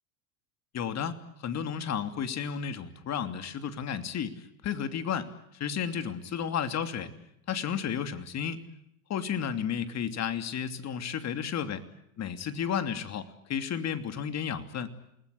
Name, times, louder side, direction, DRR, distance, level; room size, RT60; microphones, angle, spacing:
voice 1, 0.7-7.1 7.5-8.6 9.1-11.8 12.2-14.9, left 8 dB, 40° left, 9 dB, 2.9 m, -32 dB
28.5 x 20.5 x 8.5 m, 0.77 s
hypercardioid pair, 90°, 40 cm